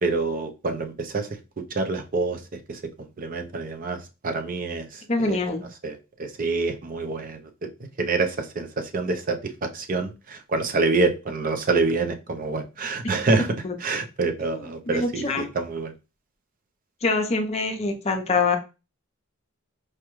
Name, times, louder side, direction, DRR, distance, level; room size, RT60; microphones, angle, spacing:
voice 1, 0.0-5.4 5.8-7.7 8.0-15.9, right 3 dB, 40° right, 6 dB, 0.5 m, -27 dB
voice 2, 5.1-5.6 13.0-13.1 13.6-13.7 14.9-15.5 17.0-18.6, left 3 dB, 30° left, 3 dB, 0.6 m, -24 dB
4.7 x 2.2 x 3.0 m, 0.30 s
head